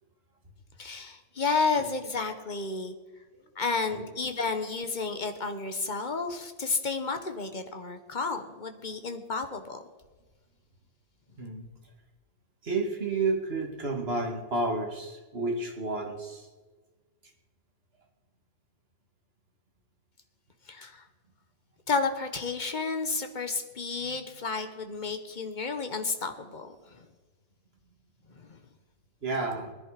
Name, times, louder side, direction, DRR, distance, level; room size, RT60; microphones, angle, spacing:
voice 1, 0.8-2.9 3.5-9.8 20.7-21.0 21.9-27.0 28.3-28.6, left 4 dB, 30° left, 7 dB, 1.1 m, -31 dB
voice 2, 11.4-11.7 12.6-16.5 29.2-29.7, right 3 dB, 30° right, 1 dB, 2.4 m, -31 dB
20.0 x 11.0 x 5.1 m, 1.3 s
omnidirectional pair, 2.0 m